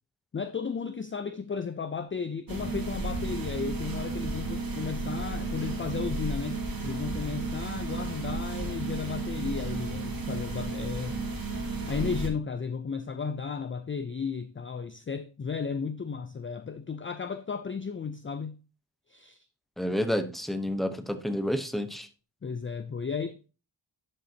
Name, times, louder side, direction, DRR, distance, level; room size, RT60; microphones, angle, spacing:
voice 1, 0.3-11.2 11.9-18.6 19.1-19.4 22.4-23.4, left 5 dB, 30° left, 0.4 m, -34 dB
sound 1, 2.5-12.3, right 3 dB, 50° right, 1.9 m, -33 dB
voice 2, 19.8-22.1, equal, ahead, 0.9 m, -29 dB
11.0 x 6.6 x 2.8 m
wide cardioid pair, 110°, 46 cm